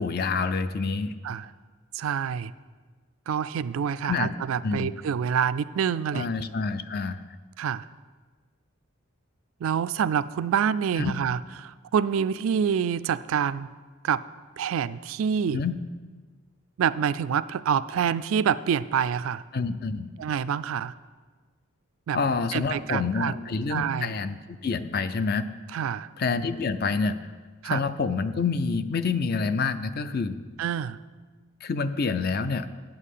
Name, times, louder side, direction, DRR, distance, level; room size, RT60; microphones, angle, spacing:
voice 1, 0.0-1.1 4.0-4.4 4.6-4.9 6.1-7.2 11.0-11.1 15.5-15.8 19.5-20.1 22.1-25.5 26.2-27.2 27.6-30.4 31.6-32.7, left 4 dB, 45° left, 12 dB, 0.5 m, -27 dB
voice 2, 1.9-2.5 3.3-6.4 7.6-7.9 9.6-13.7 14.0-14.2 14.6-15.6 16.8-19.4 20.2-20.9 22.1-22.2 22.5-23.3 23.7-24.1 25.7-26.1 27.6-27.8 30.6-31.0, right 7 dB, 80° right, 16 dB, 0.3 m, -27 dB
9.1 x 5.6 x 8.2 m, 1.4 s
head